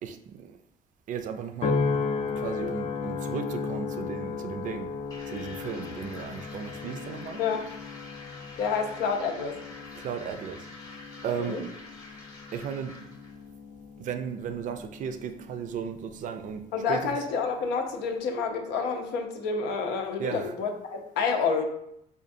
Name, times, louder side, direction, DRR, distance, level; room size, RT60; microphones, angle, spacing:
voice 1, 0.0-0.6 1.1-1.8 2.4-4.9 5.3-7.4 9.9-11.0 11.2-11.7 12.5-12.9 14.0-17.2 20.2-20.5, right 7 dB, 50° right, 8 dB, 0.4 m, -35 dB
sound 1, 1.6-16.1 16.6-17.0, left 4 dB, 40° left, 0.4 m, -35 dB
sound 2, 5.1-13.4, left 2 dB, 20° left, 0.8 m, -47 dB
voice 2, 8.6-9.6 11.4-11.6 16.7-21.7, left 5 dB, 90° left, 3 dB, 0.6 m, -29 dB
5.0 x 2.4 x 2.6 m, 0.74 s
cardioid pair, 110°, 17 cm